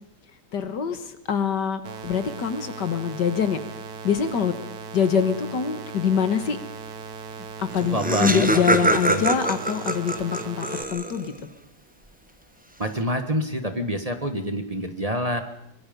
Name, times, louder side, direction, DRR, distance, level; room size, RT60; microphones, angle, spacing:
voice 1, 0.5-3.6 4.0-4.5 4.9-6.6 7.6-11.3, left 7 dB, 80° left, 9 dB, 2.1 m, -24 dB
sound 1, 1.8-10.8, right 5 dB, 65° right, 1.6 m, -38 dB
Laughter, 7.4-7.5 7.7-11.4, right 1 dB, 5° right, 1.1 m, -24 dB
voice 2, 7.9-8.5 8.8-9.3 12.8-15.4, right 1 dB, 20° right, 7 dB, 1.5 m, -27 dB
24.5 x 22.5 x 5.4 m, 0.82 s
omnidirectional pair, 1.8 m